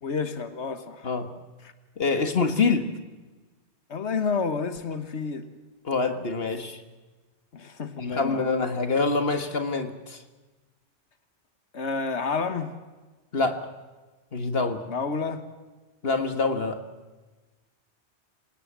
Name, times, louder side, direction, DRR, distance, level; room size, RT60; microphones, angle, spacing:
voice 1, 0.0-1.1 1.6-1.7 3.9-5.5 7.5-8.5 11.7-12.7 14.9-15.4, left 5 dB, 85° left, 10 dB, 1.7 m, -30 dB
voice 2, 2.0-2.9 5.8-6.8 8.0-10.2 13.3-13.7 14.3-14.8 16.0-16.8, left 4 dB, 60° left, 8 dB, 1.9 m, -25 dB
27.0 x 18.5 x 7.5 m, 1.2 s
omnidirectional pair, 1.1 m